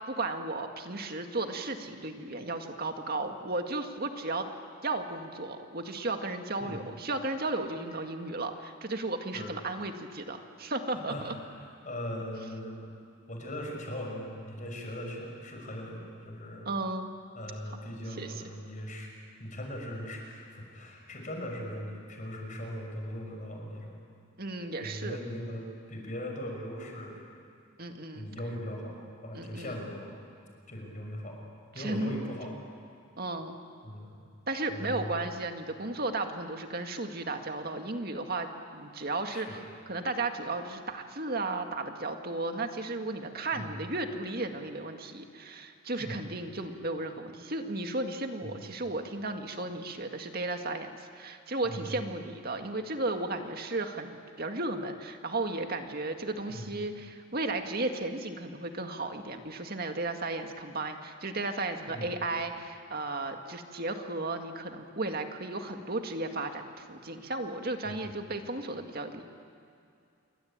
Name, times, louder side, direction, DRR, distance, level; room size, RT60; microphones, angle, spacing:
voice 1, 0.1-4.5 4.8-11.3 16.7-17.1 18.2-18.4 24.4-25.2 27.8-28.3 29.3-29.8 31.8-32.3 33.2-33.6 34.5-38.5 38.7-69.3, right 2 dB, 45° right, 5 dB, 2.0 m, -34 dB
voice 2, 11.8-12.9 13.3-16.7 17.3-19.1 19.4-23.9 24.8-27.2 28.1-29.0 29.2-30.2 30.7-31.4 31.7-32.5 33.8-34.2 34.7-35.1 39.3-39.6 43.5-43.7 46.0-46.2 48.4-48.7 51.6-51.9 56.5-56.7 61.9-62.1 67.8-68.0, equal, 35° left, 1 dB, 6.0 m, -39 dB
28.0 x 23.5 x 8.9 m, 2.5 s
head